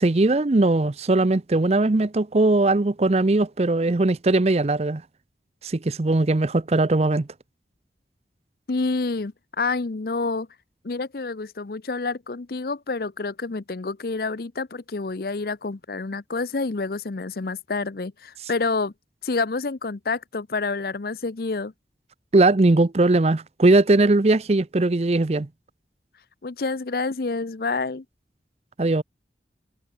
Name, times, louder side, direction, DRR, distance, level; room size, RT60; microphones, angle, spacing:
voice 1, 0.0-5.0 5.6-7.3 22.3-25.5 28.8-29.0, right 2 dB, 35° right, 0.6 m, -20 dB
voice 2, 8.7-10.5 10.8-18.9 19.2-21.7 26.4-28.0, left 3 dB, 55° left, 0.7 m, -28 dB
head